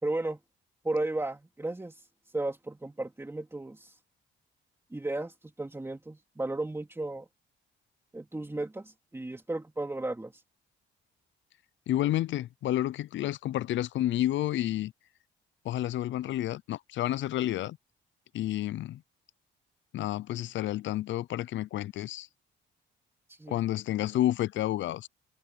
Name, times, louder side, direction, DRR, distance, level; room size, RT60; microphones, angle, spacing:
voice 1, 0.0-0.4 0.8-2.1 2.3-4.0 4.9-7.3 8.1-10.4 23.3-23.6, right 2 dB, 10° right, 3.3 m, -34 dB
voice 2, 11.9-14.9 15.6-17.8 18.3-19.0 19.9-22.3 23.5-25.1, left 13 dB, 70° left, 0.5 m, -30 dB
cardioid pair, 90°, 20 cm